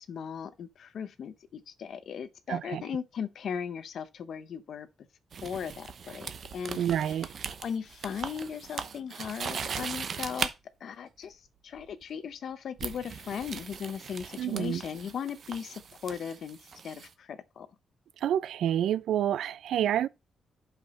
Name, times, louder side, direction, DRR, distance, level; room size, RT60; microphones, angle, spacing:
voice 1, 0.0-4.9 5.4-7.3 7.6-10.5 10.8-17.7, left 7 dB, 55° left, 0.7 m, -38 dB
voice 2, 2.5-2.8 6.7-7.3 14.4-14.8 18.2-20.1, right 10 dB, 90° right, 0.4 m, -28 dB
sound 1, 5.3-10.5 11.8-12.0 12.8-17.1, right 6 dB, 45° right, 0.9 m, -39 dB
8.0 x 5.8 x 4.2 m
wide cardioid pair, 170°, 0 cm